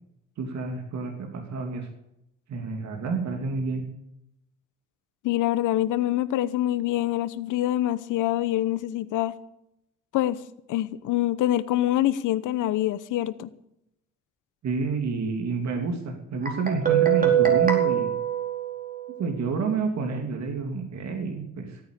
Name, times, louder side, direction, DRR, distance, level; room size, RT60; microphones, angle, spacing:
voice 1, 0.4-1.9 2.5-3.8 14.6-18.1 19.2-21.8, right 4 dB, 65° right, 4 dB, 2.9 m, -29 dB
voice 2, 5.2-9.3 10.1-10.4 10.7-13.5, left 14 dB, 85° left, 16 dB, 1.0 m, -25 dB
Guitar, 16.5-19.2, right 10 dB, 30° right, 4.6 m, -23 dB
16.0 x 9.6 x 8.4 m, 0.82 s
cardioid pair, 90°, 30 cm